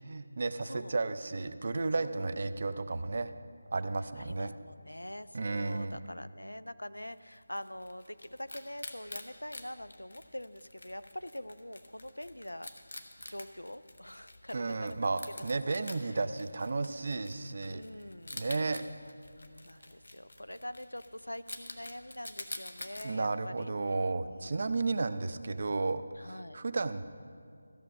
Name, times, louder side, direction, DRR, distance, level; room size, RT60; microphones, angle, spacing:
voice 1, 0.0-3.3 3.7-4.5 5.3-6.0 14.5-17.8 18.3-18.8 23.0-27.1, right 3 dB, 45° right, 12 dB, 0.5 m, -33 dB
voice 2, 0.6-0.9 2.0-2.3 4.2-12.9 13.3-15.3 15.7-16.2 17.7-18.5 19.6-23.7 24.2-25.0 26.2-26.6, left 1 dB, 90° left, 14 dB, 0.4 m, -45 dB
Wild animals, 7.1-23.1, left 1 dB, 70° left, 1.1 m, -48 dB
14.0 x 6.6 x 6.0 m, 2.3 s
figure-of-eight pair, 165°, 0 cm